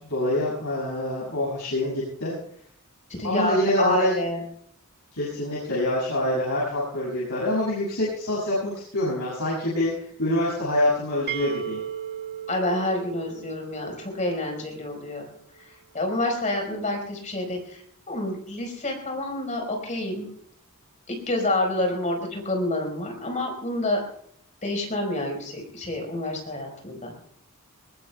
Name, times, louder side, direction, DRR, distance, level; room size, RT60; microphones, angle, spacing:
voice 1, 0.1-2.3 3.2-4.2 5.1-9.9 10.2-11.8, left 1 dB, 75° left, -6 dB, 6.9 m, -25 dB
voice 2, 3.2-4.4 12.5-15.3 15.9-17.8 18.1-20.3 21.1-24.0 24.6-27.1, left 1 dB, 35° left, 1 dB, 4.7 m, -28 dB
sound 1, 11.3-15.0, right 9 dB, 45° right, 1.0 m, -36 dB
21.0 x 21.0 x 2.3 m, 0.66 s
head